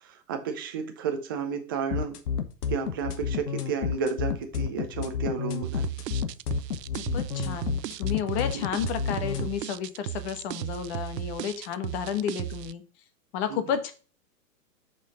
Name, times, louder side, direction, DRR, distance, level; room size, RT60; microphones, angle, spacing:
voice 1, 0.0-2.2 2.7-5.9 8.5-8.6 13.5-13.6, right 5 dB, 15° right, 6 dB, 0.4 m, -32 dB
sound 1, 1.9-9.5, left 7 dB, 70° left, 1.2 m, -30 dB
sound 2, 5.6-12.7, right 13 dB, 80° right, 0.6 m, -36 dB
voice 2, 7.0-12.8 13.3-13.9, left 8 dB, 40° left, 9 dB, 1.3 m, -32 dB
6.3 x 5.2 x 5.2 m, 0.36 s
hypercardioid pair, 130°, 49 cm